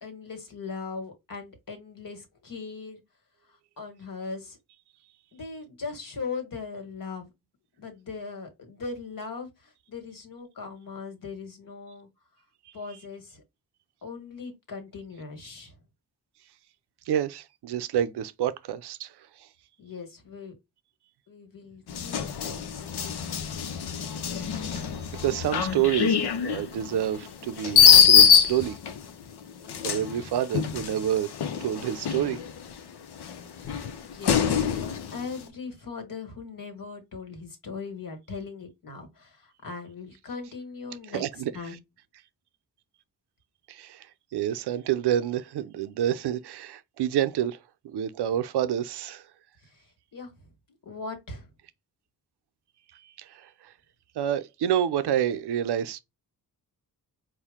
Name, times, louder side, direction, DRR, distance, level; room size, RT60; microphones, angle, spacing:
voice 1, 0.0-3.0 3.8-4.6 5.3-7.3 7.8-12.1 12.7-13.4 14.0-15.8 19.8-20.5 21.3-22.9 32.0-32.1 34.0-41.2 41.5-41.8 49.6-49.8 50.1-50.5 50.8-51.5, left 4 dB, 55° left, 1.6 m, -39 dB
voice 2, 17.1-19.5 24.4-24.9 25.2-28.8 29.8-31.3 31.6-32.4 41.1-41.8 43.7-47.6 47.8-49.3 52.9-53.7 54.2-56.0, right 10 dB, 80° right, 0.6 m, -28 dB
sound 1, 21.9-29.0 29.7-32.7 33.2-35.2, left 7 dB, 80° left, 0.8 m, -23 dB
4.4 x 2.2 x 3.6 m
cardioid pair, 60°, 39 cm